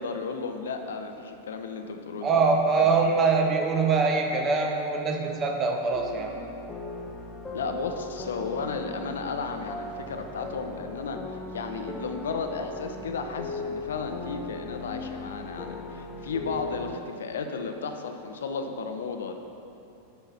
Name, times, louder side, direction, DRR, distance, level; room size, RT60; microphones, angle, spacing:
voice 1, 0.0-2.4 2.7-2.9 7.5-19.3, left 4 dB, 65° left, 6 dB, 0.7 m, -34 dB
voice 2, 2.2-6.3, right 4 dB, 25° right, 2 dB, 1.1 m, -23 dB
sound 1, 5.9-17.0, left 2 dB, 10° left, 1.0 m, -38 dB
8.5 x 5.8 x 5.7 m, 2.7 s
figure-of-eight pair, 90°, 0 cm